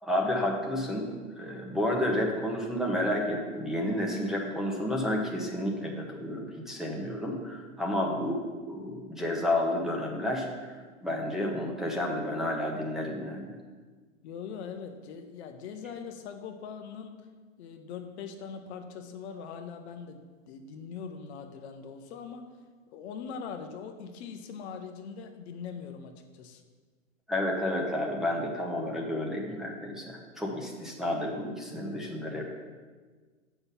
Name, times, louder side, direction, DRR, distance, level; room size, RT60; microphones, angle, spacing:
voice 1, 0.0-1.1 1.4-8.4 8.7-10.7 11.0-13.5 27.3-32.4, left 1 dB, ahead, -3 dB, 1.3 m, -31 dB
voice 2, 14.2-17.3 17.6-22.5 22.9-26.6, left 6 dB, 55° left, 5 dB, 1.0 m, -41 dB
7.8 x 5.8 x 5.7 m, 1.4 s
hypercardioid pair, 110°, 39 cm